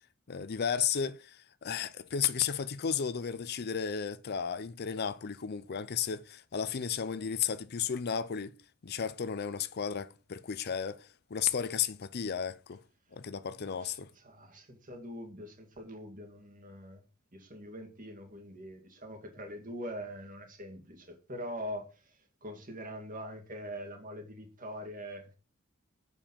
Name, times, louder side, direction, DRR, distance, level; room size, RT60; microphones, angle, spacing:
voice 1, 0.3-8.6 8.8-12.8 13.1-14.1, left 7 dB, 50° left, 0.5 m, -34 dB
voice 2, 13.6-17.0 17.3-25.3, equal, 40° right, 2.2 m, -43 dB
7.3 x 5.4 x 7.0 m
head